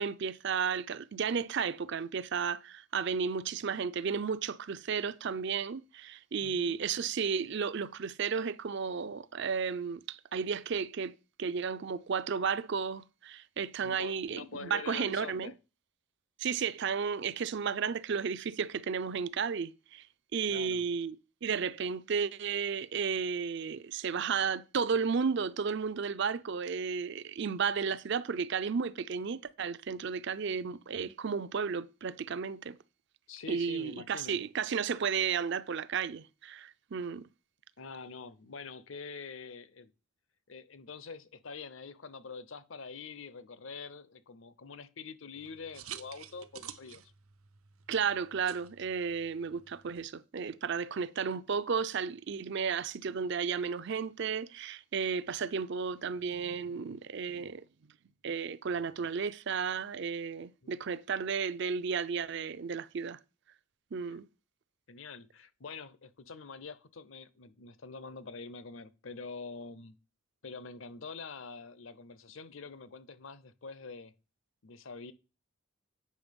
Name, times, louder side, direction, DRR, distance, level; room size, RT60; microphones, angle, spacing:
voice 1, 0.0-15.5 16.4-20.1 20.3-21.1 21.4-32.8 33.5-37.3 47.9-57.6 58.2-63.2 63.9-64.3, right 6 dB, 55° right, 0.5 m, -33 dB
voice 2, 6.4-6.8 13.8-15.5 20.5-20.8 33.3-34.4 37.8-39.9 40.5-47.0 60.6-60.7 64.1-64.2 64.9-69.9 70.4-74.1 74.6-75.1, left 4 dB, 65° left, 0.7 m, -45 dB
sound 1, 45.3-50.1, right 9 dB, 85° right, 0.8 m, -50 dB
8.5 x 5.8 x 5.2 m
head